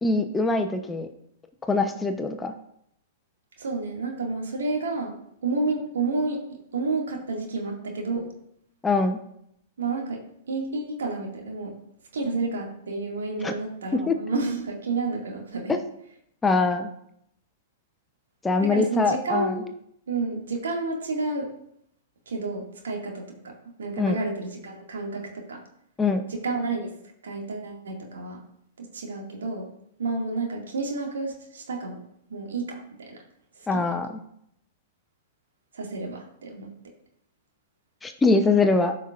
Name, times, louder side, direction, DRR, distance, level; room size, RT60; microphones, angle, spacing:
voice 1, 0.0-1.1 1.7-2.5 8.8-9.2 13.4-13.5 14.1-14.2 15.7-15.8 16.4-16.9 18.4-19.6 24.0-24.2 26.0-26.2 33.7-34.1 38.0-38.9, left 3 dB, 15° left, 6 dB, 0.8 m, -23 dB
voice 2, 3.6-5.2 5.4-8.3 9.8-10.2 10.5-11.7 12.1-15.7 18.6-19.7 20.1-21.5 22.3-23.5 23.8-25.6 26.3-26.9 27.2-28.4 28.8-29.7 30.0-32.0 32.3-33.2 33.6-33.8 35.7-36.7, right 3 dB, 75° right, 1 dB, 2.2 m, -30 dB
13.5 x 5.6 x 2.5 m, 0.73 s
hypercardioid pair, 105°, 0 cm